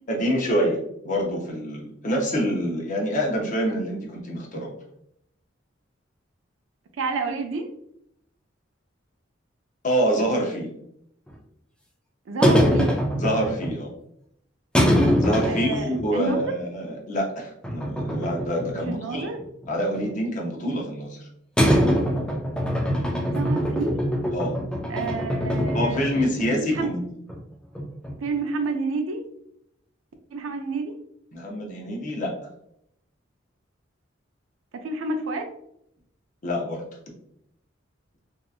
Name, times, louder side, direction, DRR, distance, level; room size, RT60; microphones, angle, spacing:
voice 1, 0.1-0.8 1.0-4.7 9.8-10.7 13.2-13.9 15.2-19.3 19.7-21.3 24.3-24.6 25.7-27.0 31.3-32.3 36.4-36.8, equal, 40° left, -1 dB, 0.6 m, -26 dB
voice 2, 7.0-7.7 12.3-13.0 15.4-16.4 18.9-19.4 23.3-24.0 24.9-26.1 26.6-26.9 28.2-29.2 30.3-30.9 34.7-35.5, right 3 dB, 90° right, 6 dB, 0.4 m, -29 dB
sound 1, 11.3-11.4 12.4-13.7 14.7-16.0 16.4-16.5 17.6-18.9 19.2-20.1 21.6-26.5 26.7-26.8 27.3-27.4 27.7-28.3, equal, 5° left, 0.3 m, -23 dB
2.7 x 2.3 x 2.3 m, 0.73 s
head